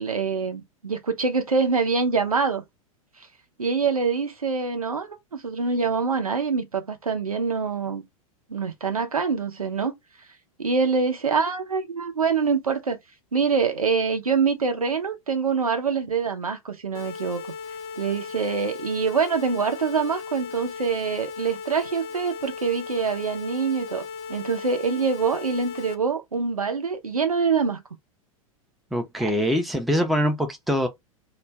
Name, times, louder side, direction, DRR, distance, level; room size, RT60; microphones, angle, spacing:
voice 1, 0.0-2.6 3.6-8.0 8.5-9.9 10.6-13.0 13.3-17.4 18.0-27.8 29.2-29.3, right 5 dB, 85° right, 0.7 m, -25 dB
sound 1, 16.9-25.9, left 6 dB, 45° left, 0.7 m, -37 dB
voice 2, 28.9-30.9, equal, ahead, 0.5 m, -23 dB
2.5 x 2.2 x 3.2 m
figure-of-eight pair, 90°, 18 cm